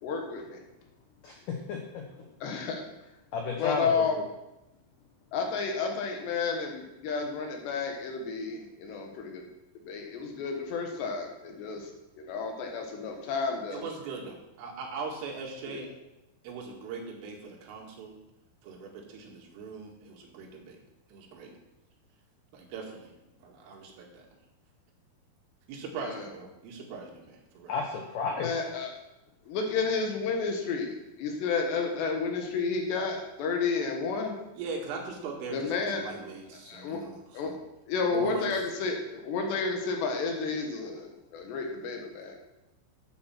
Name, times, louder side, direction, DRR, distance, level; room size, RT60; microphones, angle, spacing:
voice 1, 0.0-0.6 2.4-2.8 3.6-4.2 5.3-9.5 9.8-11.9 12.2-13.8 15.6-15.9 26.0-26.3 28.4-29.0 29.5-34.4 35.5-36.1 36.6-37.0 37.3-37.5 37.9-42.4, left 4 dB, 70° left, 3 dB, 3.3 m, -31 dB
voice 2, 1.2-2.0 3.3-4.0 27.7-28.5, left 5 dB, 85° left, 2 dB, 1.8 m, -32 dB
voice 3, 13.7-15.9 16.4-18.2 18.6-20.8 21.1-21.5 22.5-23.1 23.4-24.2 25.7-27.7 34.6-37.6 38.1-38.5, right 4 dB, 85° right, 0 dB, 4.6 m, -40 dB
11.5 x 8.7 x 5.9 m, 0.94 s
omnidirectional pair, 5.6 m